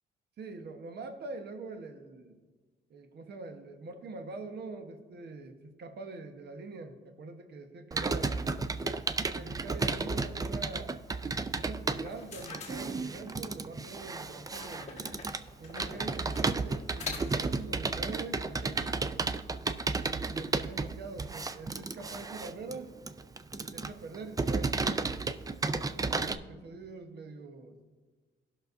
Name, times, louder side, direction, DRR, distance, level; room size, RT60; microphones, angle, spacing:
voice 1, 0.4-2.4 2.9-8.4 9.3-11.0 11.5-15.2 15.6-19.0 20.1-22.9 23.6-25.0 25.7-27.8, right 3 dB, 55° right, 6 dB, 1.1 m, -44 dB
Computer keyboard, 7.9-26.4, right 3 dB, 20° right, 0.4 m, -33 dB
sound 1, 12.0-13.5 14.5-17.6, left 5 dB, 35° left, 1.6 m, -45 dB
18.5 x 6.1 x 2.6 m, 1.4 s
cardioid pair, 90°, 20 cm